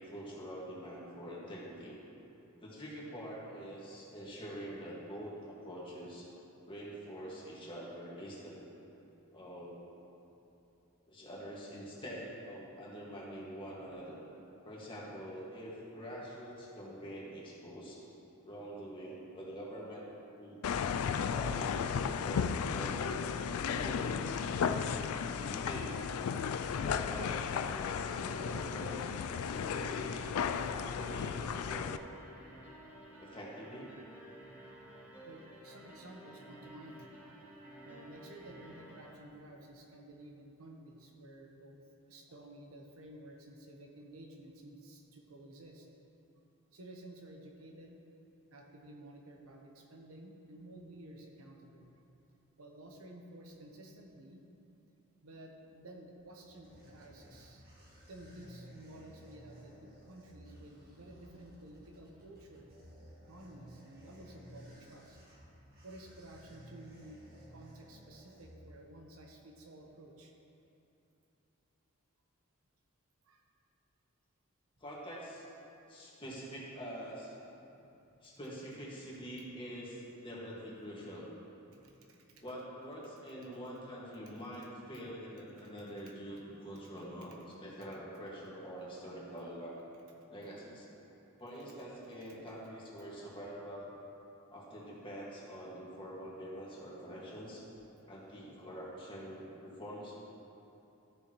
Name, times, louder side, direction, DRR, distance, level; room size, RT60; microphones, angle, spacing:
voice 1, 0.0-1.9 2.6-6.3 6.7-8.6 9.3-9.8 11.1-14.2 14.6-18.0 18.4-20.0 20.4-20.6 21.2-23.2 23.7-24.9 25.5-25.9 26.8-29.0 29.4-31.4 31.6-32.0 33.2-33.9 74.8-75.5 75.9-77.4 78.2-81.3 82.4-89.8 90.3-90.8 91.4-94.0 94.5-97.7 98.0-100.2, equal, 25° left, -6 dB, 1.9 m, -45 dB
sound 1, 20.6-32.0, left 6 dB, 85° left, 0.3 m, -34 dB
sound 2, 23.1-39.1, right 1 dB, 5° right, 1.5 m, -53 dB
voice 2, 35.3-37.1 37.8-45.9 46.7-48.0 48.5-52.0 52.6-54.4 55.2-57.6 58.1-62.7 63.2-65.2 65.8-67.2 67.5-70.3 73.2-73.4 77.7-78.3 81.7-82.4 85.6-85.7, right 1 dB, 80° right, 1 dB, 1.0 m, -53 dB
sound 3, 56.2-69.0, equal, 45° right, 1.7 m, -56 dB
13.5 x 7.0 x 3.1 m, 2.9 s
head